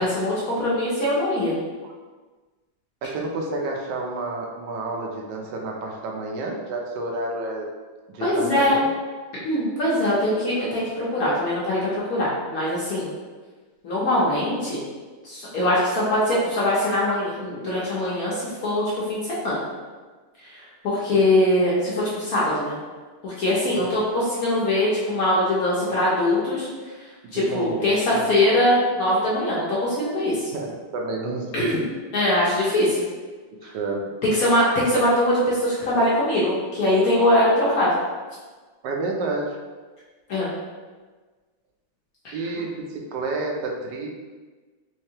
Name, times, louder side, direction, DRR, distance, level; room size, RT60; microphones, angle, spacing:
voice 1, 0.0-1.5 8.2-8.8 9.3-13.1 13.8-14.8 15.2-19.6 20.4-22.8 23.2-26.7 27.3-30.4 31.5-31.8 32.1-33.0 33.6-33.7 34.2-38.0 40.3-40.5 42.2-42.3, left 1 dB, 60° left, -7 dB, 0.9 m, -22 dB
voice 2, 3.0-7.7 8.1-8.9 23.8-23.9 27.2-28.2 30.5-31.5 31.7-31.9 33.5-34.0 38.8-39.6 42.3-44.1, right 2 dB, 75° right, 0 dB, 1.0 m, -30 dB
3.5 x 3.2 x 2.8 m, 1.3 s
omnidirectional pair, 2.3 m